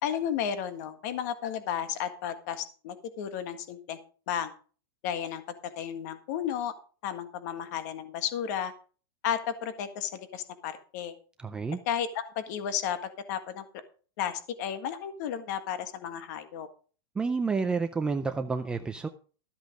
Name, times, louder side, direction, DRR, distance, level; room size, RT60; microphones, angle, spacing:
voice 1, 0.0-4.0 4.3-4.5 5.0-5.4 5.8-6.7 7.0-8.7 9.2-11.1 11.9-13.6 14.2-16.7, left 9 dB, 45° left, 1.6 m, -33 dB
voice 2, 11.4-11.8 17.2-19.1, right 4 dB, 5° right, 0.4 m, -29 dB
13.5 x 7.9 x 5.2 m
supercardioid pair, 170°, 13 cm